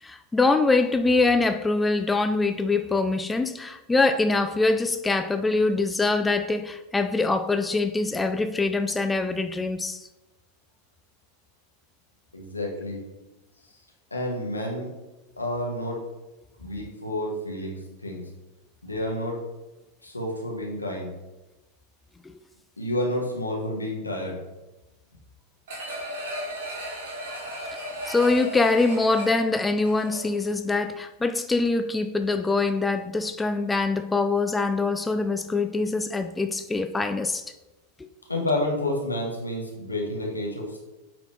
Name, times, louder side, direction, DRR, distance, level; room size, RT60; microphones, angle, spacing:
voice 1, 0.0-10.1 28.1-37.5, left 3 dB, 10° left, 0.3 m, -24 dB
voice 2, 12.3-13.0 14.1-14.9 15.4-16.0 16.6-18.3 18.8-19.4 20.0-21.1 22.8-24.4 38.3-40.8, left 1 dB, 85° left, 1.5 m, -30 dB
sound 1, 25.7-30.5 30.9-31.0, equal, 55° right, 2.2 m, -35 dB
8.8 x 3.9 x 3.3 m
figure-of-eight pair, 90°, 0 cm